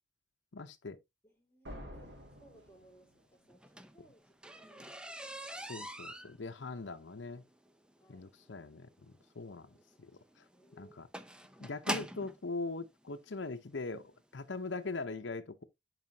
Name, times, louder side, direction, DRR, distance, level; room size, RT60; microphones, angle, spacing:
voice 1, 0.5-1.0 5.6-7.4 8.1-9.7 10.4-10.5 10.8-11.1 11.6-15.6, left 3 dB, 85° left, 0.8 m, -41 dB
voice 2, 1.2-5.9 8.0-8.4 9.6-11.1, right 1 dB, 15° left, 3.1 m, -64 dB
sound 1, 1.6-3.5, equal, 75° right, 2.9 m, -49 dB
sound 2, 3.5-12.4 13.3-13.4 13.9-14.1 14.4-14.5 14.9-15.0, right 1 dB, 5° right, 0.7 m, -43 dB
11.0 x 5.0 x 2.8 m
head